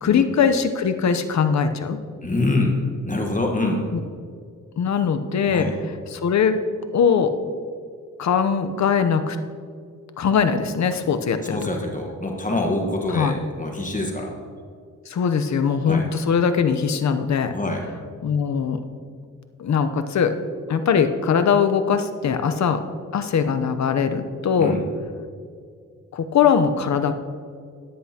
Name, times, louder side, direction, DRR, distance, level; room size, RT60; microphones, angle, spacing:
voice 1, 0.0-2.0 3.9-4.0 4.8-5.7 6.1-6.6 6.9-7.3 8.2-9.4 10.2-11.6 13.1-13.4 15.1-17.5 18.2-18.8 19.6-20.3 20.7-22.8 23.1-24.8 26.1-27.1, left 6 dB, 60° left, 9 dB, 0.8 m, -21 dB
voice 2, 2.2-2.8 3.1-3.8 5.4-5.7 11.5-14.3 15.9-16.0 17.5-17.8 24.6-24.8, left 2 dB, 25° left, 1 dB, 1.3 m, -25 dB
14.0 x 9.7 x 2.9 m, 2.2 s
cardioid pair, 75°, 32 cm